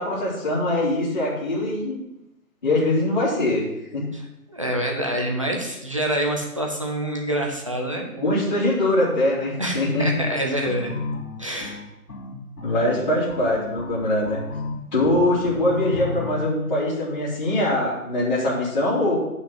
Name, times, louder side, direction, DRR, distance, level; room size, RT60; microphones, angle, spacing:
voice 1, 0.0-2.0 2.6-3.6 3.9-4.0 8.2-10.1 12.6-14.4 14.9-19.2, left 1 dB, 30° left, -8 dB, 2.9 m, -22 dB
voice 2, 4.1-8.4 9.6-10.9 11.4-11.8 13.1-13.2, right 1 dB, 20° right, 0 dB, 0.8 m, -27 dB
sound 1, 10.6-16.4, left 3 dB, 85° left, 2.6 m, -34 dB
8.0 x 5.8 x 5.8 m, 0.87 s
hypercardioid pair, 175°, 45 cm